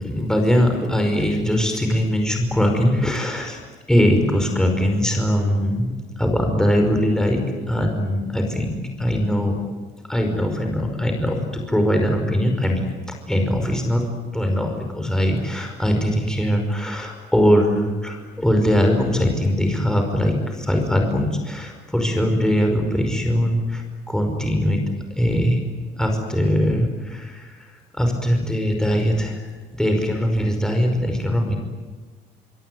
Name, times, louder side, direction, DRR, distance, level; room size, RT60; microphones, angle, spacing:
voice 1, 0.0-3.6 3.9-7.4 7.7-9.6 10.1-12.8 13.3-14.0 14.3-24.8 25.2-25.6 26.0-29.5 29.8-31.6, equal, 5° left, 3 dB, 5.2 m, -21 dB
26.0 x 24.5 x 9.5 m, 1.4 s
cardioid pair, 110°, 17 cm